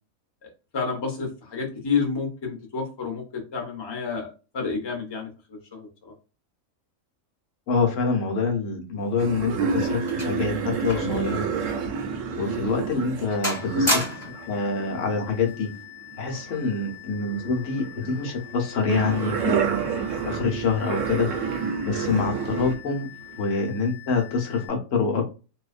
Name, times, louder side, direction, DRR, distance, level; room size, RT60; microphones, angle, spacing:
voice 1, 0.4-4.3 4.5-6.1, left 5 dB, 30° left, 1 dB, 0.5 m, -30 dB
voice 2, 7.7-11.5 12.4-14.0 14.5-15.7 16.2-19.8 20.2-21.3 21.8-23.1 23.4-25.2, left 4 dB, 70° left, 2 dB, 1.1 m, -26 dB
sound 1, 9.1-11.2 11.5-11.7 12.3-12.5 12.9-13.2 13.4-14.5 15.5-15.8, equal, 10° left, 1.1 m, -30 dB
sound 2, 9.2-16.9 17.2-22.7 23.2-23.4, right 5 dB, 75° right, 0.9 m, -29 dB
sound 3, 13.3-24.7, left 16 dB, 30° right, 0.6 m, -45 dB
2.6 x 2.2 x 2.4 m, 0.31 s
omnidirectional pair, 1.4 m